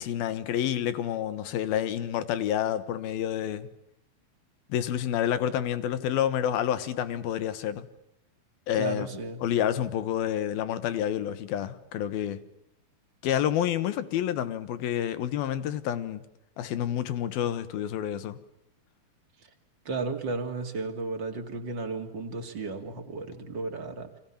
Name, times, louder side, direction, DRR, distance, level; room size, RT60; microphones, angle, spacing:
voice 1, 0.0-3.7 4.7-7.9 8.7-9.1 9.4-12.4 13.2-16.2 16.6-18.4, left 10 dB, 75° left, 3.1 m, -29 dB
voice 2, 8.7-9.4 19.8-24.2, right 3 dB, 35° right, 2.5 m, -34 dB
30.0 x 24.0 x 7.3 m
omnidirectional pair, 4.4 m